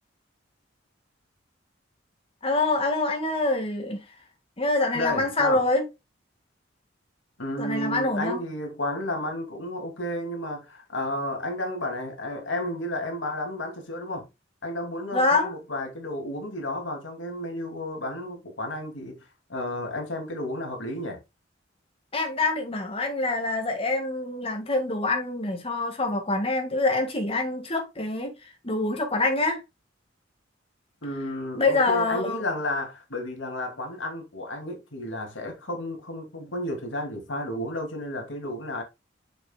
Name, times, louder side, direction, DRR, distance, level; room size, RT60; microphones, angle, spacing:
voice 1, 2.4-4.0 4.6-5.8 7.6-8.4 15.1-15.5 22.1-28.3 28.6-29.6 31.6-32.4, left 2 dB, 30° left, 1.8 m, -25 dB
voice 2, 4.9-5.6 7.4-14.3 14.6-19.2 19.5-21.2 31.0-38.8, left 1 dB, 75° left, 2.4 m, -32 dB
7.0 x 6.0 x 2.2 m
head